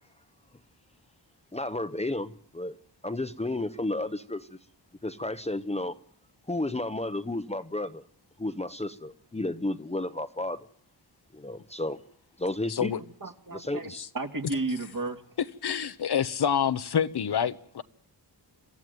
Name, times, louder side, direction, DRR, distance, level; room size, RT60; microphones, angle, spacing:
voice 1, 1.5-2.8 3.0-4.6 5.0-5.9 6.5-8.0 8.4-10.6 11.3-12.0 12.4-12.9 13.5-14.0, left 2 dB, 15° left, 0.9 m, -32 dB
voice 2, 12.7-13.0 13.9-14.1 15.6-17.8, left 8 dB, 65° left, 1.0 m, -27 dB
voice 3, 13.2-13.9 14.1-15.2, right 3 dB, 50° right, 2.2 m, -32 dB
27.0 x 15.0 x 9.3 m
wide cardioid pair, 90°, 42 cm